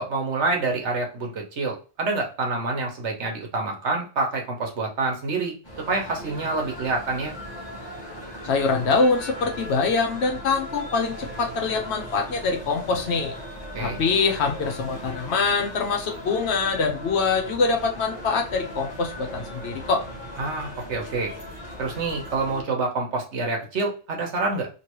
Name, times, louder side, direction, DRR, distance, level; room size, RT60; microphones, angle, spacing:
voice 1, 0.0-5.5 5.9-7.3 13.7-14.0 20.4-21.3 21.8-24.7, right 3 dB, 80° right, 1 dB, 1.3 m, -27 dB
sound 1, 5.6-22.6, equal, 25° left, 1.2 m, -38 dB
voice 2, 8.4-13.3 13.8-20.0, left 4 dB, 70° left, 3 dB, 1.0 m, -24 dB
3.1 x 2.9 x 2.9 m, 0.35 s
omnidirectional pair, 1.2 m